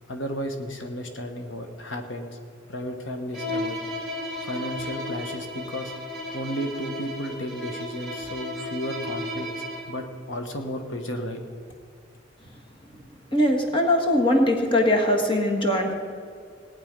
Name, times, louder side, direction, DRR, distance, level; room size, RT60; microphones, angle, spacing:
voice 1, 0.1-2.4 2.7-3.8 4.4-5.9 6.3-9.5 9.9-11.4, equal, 75° left, 5 dB, 1.2 m, -33 dB
Bowed string instrument, 3.3-10.0, left 1 dB, ahead, 3.1 m, -34 dB
voice 2, 13.3-15.9, left 1 dB, 25° left, 2 dB, 1.6 m, -21 dB
18.5 x 9.3 x 5.2 m, 2.3 s
head